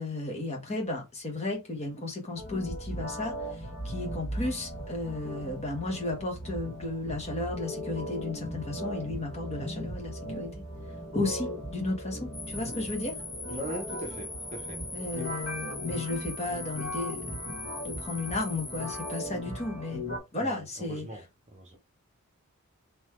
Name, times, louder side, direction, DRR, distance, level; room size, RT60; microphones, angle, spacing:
voice 1, 0.0-3.3 3.8-10.5 11.1-13.2 14.9-17.2 17.7-20.1 20.3-21.2, left 2 dB, 30° left, 1.3 m, -34 dB
sound 1, 2.4-20.2, equal, 60° left, 2.0 m, -38 dB
sound 2, 12.3-19.3, left 2 dB, 10° left, 0.5 m, -41 dB
voice 2, 13.5-15.3 20.4-21.8, right 1 dB, 30° right, 0.7 m, -41 dB
3.9 x 3.1 x 3.1 m
head